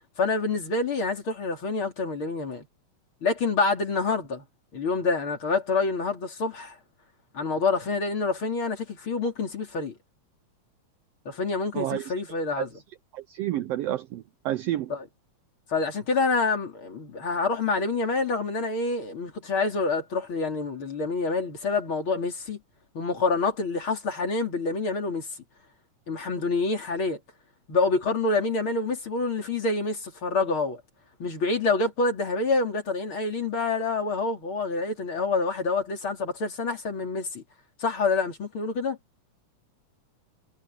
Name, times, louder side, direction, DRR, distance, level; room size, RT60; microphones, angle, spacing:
voice 1, 0.2-2.7 3.2-4.4 4.7-6.8 7.3-9.9 11.3-12.7 14.9-15.0 15.7-22.6 22.9-25.3 26.1-27.2 27.7-30.8 31.2-37.4 37.8-39.0, left 3 dB, 45° left, 4.0 m, -27 dB
voice 2, 11.7-12.1 12.6-12.7 13.1-14.9, right 13 dB, 75° right, 1.5 m, -30 dB
omnidirectional pair, 3.3 m